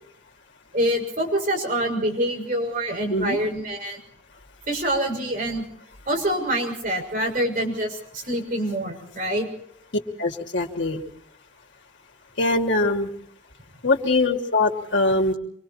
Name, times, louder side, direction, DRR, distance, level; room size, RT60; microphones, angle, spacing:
voice 1, 0.7-4.0 4.7-5.6 6.1-9.5, right 1 dB, 45° right, 1 dB, 6.4 m, -25 dB
voice 2, 10.2-11.0 12.4-13.1 13.8-15.3, left 2 dB, 85° left, 1 dB, 2.8 m, -22 dB
28.0 x 24.0 x 4.4 m, 0.66 s
head